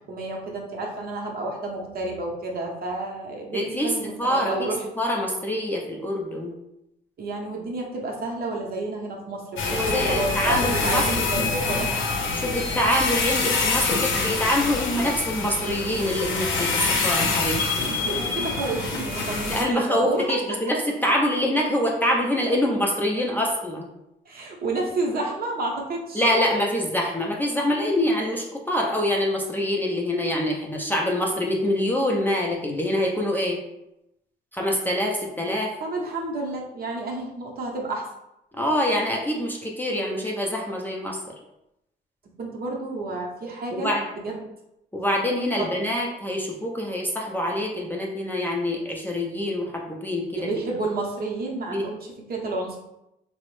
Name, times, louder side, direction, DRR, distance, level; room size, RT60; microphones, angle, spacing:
voice 1, 0.1-4.8 7.2-11.9 17.9-20.4 24.3-26.2 35.8-38.1 42.4-44.4 45.6-45.7 50.3-52.8, right 2 dB, 50° right, -1 dB, 0.7 m, -30 dB
voice 2, 3.5-6.5 9.7-11.0 12.3-17.9 19.5-23.9 26.1-33.6 34.5-35.8 38.6-41.2 43.7-44.0 44.9-50.5 51.7-51.9, left 1 dB, 10° left, -1 dB, 0.5 m, -25 dB
sound 1, 9.6-19.6, left 4 dB, 75° left, 0.6 m, -26 dB
2.9 x 2.0 x 3.0 m, 0.86 s
cardioid pair, 90°, 20 cm